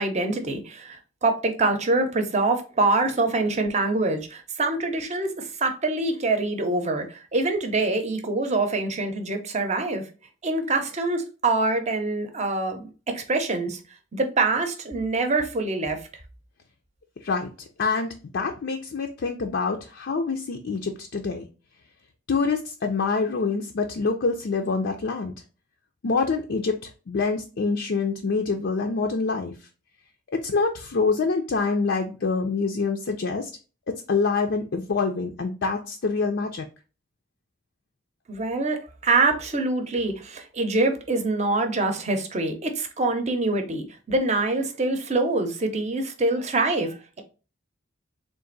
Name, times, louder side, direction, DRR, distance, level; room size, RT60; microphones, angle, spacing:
voice 1, 0.0-10.1 10.4-13.8 14.1-16.0 38.3-47.2, right 2 dB, 35° right, 0.7 m, -25 dB
voice 2, 17.2-21.4 22.3-25.3 26.0-29.7 30.3-33.5 34.1-36.6, left 4 dB, 60° left, 0.5 m, -26 dB
3.7 x 2.6 x 3.9 m
head